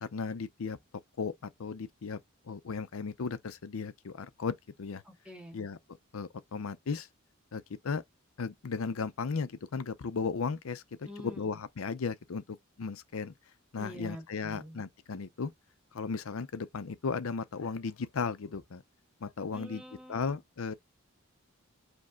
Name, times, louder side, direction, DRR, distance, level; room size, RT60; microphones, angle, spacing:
voice 1, 0.0-0.8 1.2-2.2 2.5-5.0 5.5-5.8 6.1-7.1 7.5-8.0 8.4-12.4 12.8-13.3 13.7-15.5 15.9-18.8 19.2-19.8 20.1-20.7, left 5 dB, 75° left, 0.6 m, -35 dB
voice 2, 5.0-5.7 11.0-11.5 13.8-14.8 19.5-20.4, equal, 5° right, 1.0 m, -46 dB
5.1 x 2.2 x 3.7 m
head